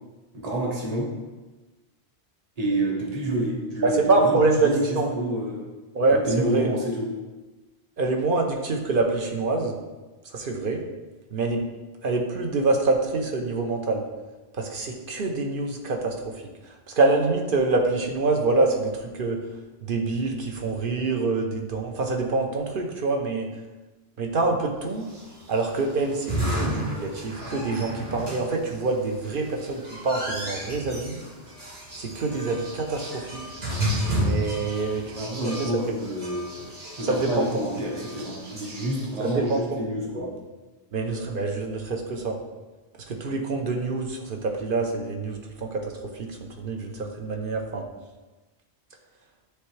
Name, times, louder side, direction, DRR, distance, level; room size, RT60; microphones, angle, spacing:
voice 1, 0.3-1.2 2.6-5.7 6.1-7.2 35.0-36.6 37.0-40.3, right 1 dB, 35° right, -3 dB, 1.3 m, -28 dB
voice 2, 3.8-5.1 5.9-6.7 8.0-9.8 10.3-10.8 11.3-11.6 12.0-14.0 14.6-16.1 16.9-19.4 19.8-23.5 24.2-25.1 25.5-31.2 32.0-33.4 34.2-35.7 37.0-37.6 39.2-39.8 40.1-40.3 40.9-42.4 43.1-45.8 46.1-47.8, right 3 dB, 55° right, 2 dB, 1.0 m, -25 dB
sound 1, 25.0-39.3, equal, 75° right, 2.1 m, -33 dB
9.7 x 3.3 x 3.3 m, 1.2 s
omnidirectional pair, 1.1 m